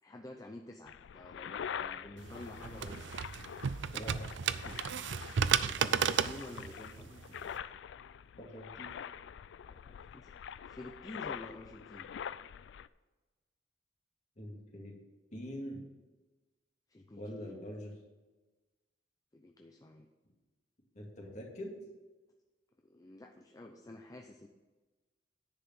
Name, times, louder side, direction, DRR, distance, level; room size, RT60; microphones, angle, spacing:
voice 1, 0.0-3.1 4.5-4.8 5.1-7.6 9.6-12.1 16.9-17.5 19.3-20.1 22.8-24.5, left 1 dB, 20° left, 3 dB, 0.5 m, -50 dB
sound 1, 0.9-12.9, left 8 dB, 70° left, 0.3 m, -45 dB
sound 2, 2.2-7.6, right 7 dB, 75° right, 0.4 m, -34 dB
voice 2, 3.9-4.3 8.4-8.9 14.4-15.0 15.3-15.8 17.1-17.9 20.9-21.7, equal, 40° left, -1 dB, 2.2 m, -44 dB
10.0 x 4.9 x 6.8 m, 1.2 s
head